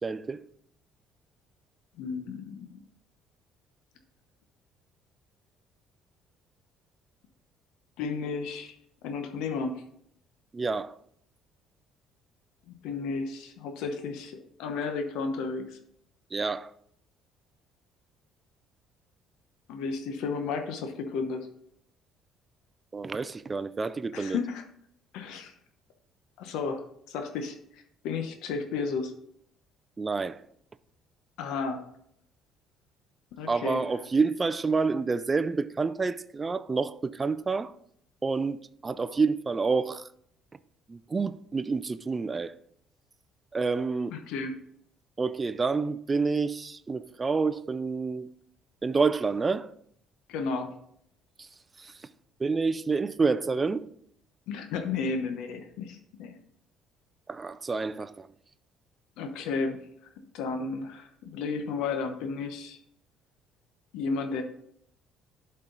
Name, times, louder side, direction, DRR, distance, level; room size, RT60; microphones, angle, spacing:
voice 1, 0.0-0.4 10.5-11.0 16.3-16.7 22.9-24.4 30.0-30.4 33.5-37.7 38.2-40.1 40.9-42.5 43.5-44.2 45.2-48.3 48.8-49.7 51.4-51.5 51.8-51.9 52.4-53.8 57.3-58.3, right 4 dB, 20° right, 0.3 m, -28 dB
voice 2, 2.0-2.7 8.0-8.8 9.0-9.8 12.8-15.8 19.7-21.5 24.1-24.6 25.1-25.5 26.4-29.1 31.4-31.8 33.3-33.8 44.1-44.6 50.3-50.7 54.5-56.3 59.2-59.8 60.2-62.8 63.9-64.4, left 4 dB, 85° left, 0.9 m, -33 dB
11.5 x 4.4 x 3.9 m
cardioid pair, 160°, 0 cm